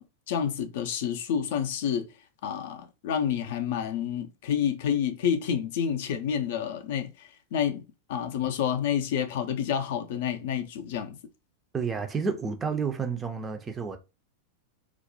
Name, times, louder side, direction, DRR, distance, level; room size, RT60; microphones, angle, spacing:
voice 1, 0.0-2.1 2.4-7.8 8.1-11.2, left 8 dB, 55° left, 0.4 m, -29 dB
voice 2, 11.7-14.0, right 5 dB, 20° right, 0.4 m, -30 dB
2.4 x 2.0 x 2.6 m
figure-of-eight pair, 90°, 0 cm